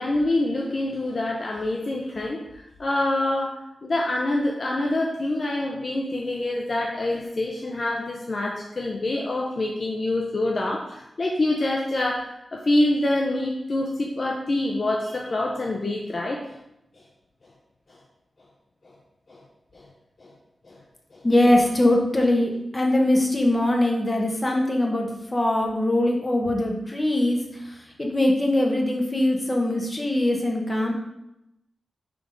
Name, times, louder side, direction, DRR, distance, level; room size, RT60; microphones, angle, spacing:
voice 1, 0.0-16.4 17.9-18.0 19.3-19.4 19.7-19.9 20.2-20.3 20.7-20.8 21.1-21.2, left 1 dB, 40° left, -1 dB, 0.7 m, -26 dB
voice 2, 21.2-30.9, left 1 dB, 20° left, 0 dB, 1.1 m, -22 dB
6.0 x 3.6 x 5.1 m, 0.87 s
wide cardioid pair, 155°, 0 cm